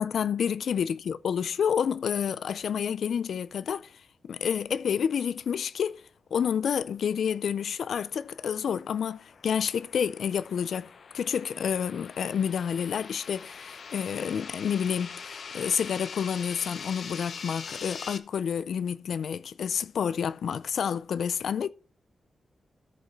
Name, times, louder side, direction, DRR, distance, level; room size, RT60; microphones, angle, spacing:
voice 1, 0.0-6.0 6.3-10.9 11.1-21.7, left 7 dB, 75° left, 0.4 m, -29 dB
sound 1, 7.7-18.2, left 5 dB, 55° left, 0.8 m, -43 dB
14.0 x 5.2 x 4.6 m
wide cardioid pair, 175°, 0 cm